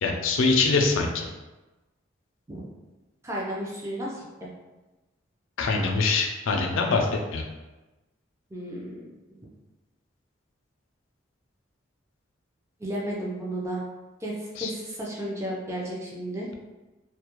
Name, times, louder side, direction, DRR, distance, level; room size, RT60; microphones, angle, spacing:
voice 1, 0.0-1.3 5.6-7.4 14.6-14.7, left 3 dB, 75° left, 2 dB, 0.4 m, -24 dB
voice 2, 3.2-4.5 8.5-8.9 12.8-13.8 14.2-16.5, right 1 dB, 15° right, -4 dB, 0.4 m, -33 dB
2.3 x 2.0 x 2.9 m, 1.1 s
head